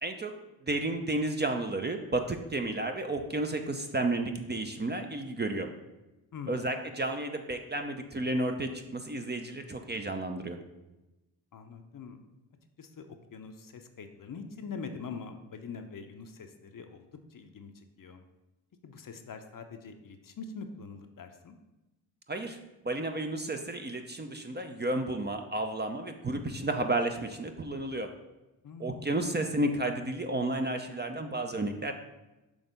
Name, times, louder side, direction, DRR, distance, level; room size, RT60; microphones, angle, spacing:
voice 1, 0.0-0.3 0.6-5.7 6.5-10.6 22.3-22.6 22.8-28.1 28.8-31.9, right 2 dB, 20° right, 5 dB, 0.6 m, -32 dB
voice 2, 6.3-6.7 11.5-12.3 12.8-18.2 18.8-21.6 28.6-29.3, left 5 dB, 45° left, 6 dB, 0.8 m, -44 dB
6.3 x 3.4 x 5.2 m, 1.0 s
supercardioid pair, 50°, 48 cm